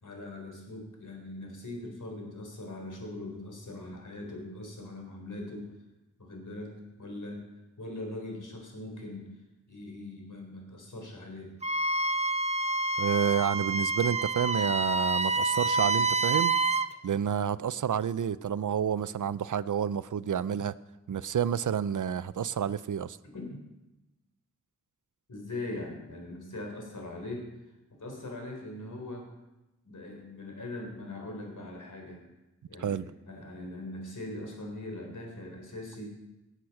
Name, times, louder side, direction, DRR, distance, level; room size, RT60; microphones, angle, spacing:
voice 1, 0.0-5.7 6.2-7.4 7.8-9.3 9.7-11.6 23.2-23.6 25.3-27.5 28.0-29.3 29.8-32.2 32.7-36.1, left 2 dB, 80° left, 1 dB, 3.9 m, -41 dB
Wind instrument woodwind instrument, 11.6-16.9, right 3 dB, 20° right, 0.6 m, -28 dB
voice 2, 13.0-16.5 17.0-20.7 21.1-23.2 32.8-33.1, right 8 dB, 80° right, 17 dB, 0.5 m, -29 dB
18.5 x 8.1 x 5.9 m, 0.99 s
wide cardioid pair, 60°, 30 cm